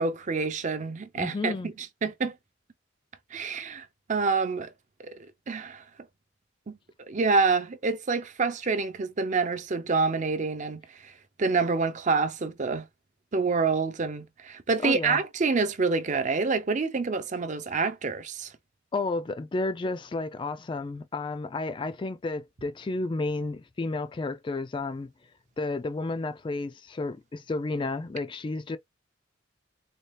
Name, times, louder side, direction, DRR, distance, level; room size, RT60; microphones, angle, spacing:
voice 1, 0.0-2.3 3.3-4.7 5.0-5.2 5.5-5.8 6.7-6.8 7.1-11.1 11.4-12.8 13.3-18.5, right 4 dB, 40° right, 0.5 m, -27 dB
voice 2, 1.2-1.7 14.8-15.2 18.9-25.1 25.6-28.8, left 3 dB, 25° left, 0.3 m, -32 dB
4.1 x 2.2 x 3.3 m
head